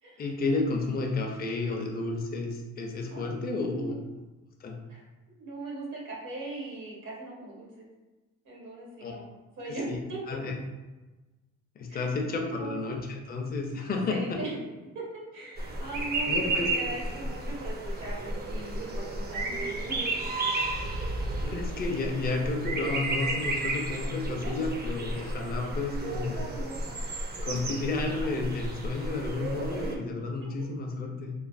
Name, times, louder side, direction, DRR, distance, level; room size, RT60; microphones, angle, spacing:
voice 1, 0.2-3.9 4.6-4.7 9.0-9.1 9.7-10.0 10.3-10.5 11.8-14.2 16.3-16.7 21.4-26.4 27.4-31.3, left 3 dB, 30° left, 1 dB, 0.5 m, -31 dB
voice 2, 3.1-4.0 4.9-7.9 8.4-9.3 9.6-10.2 11.9-12.1 12.5-12.8 14.1-14.5 14.9-15.0 15.3-20.0 24.4-24.6 26.0-27.0 28.0-28.3 29.8-29.9 30.6-30.7, right 2 dB, 80° right, -5 dB, 1.1 m, -40 dB
sound 1, 15.6-30.0, right 2 dB, 35° right, 0.5 m, -32 dB
3.0 x 2.0 x 2.5 m, 1.2 s
cardioid pair, 90°, 30 cm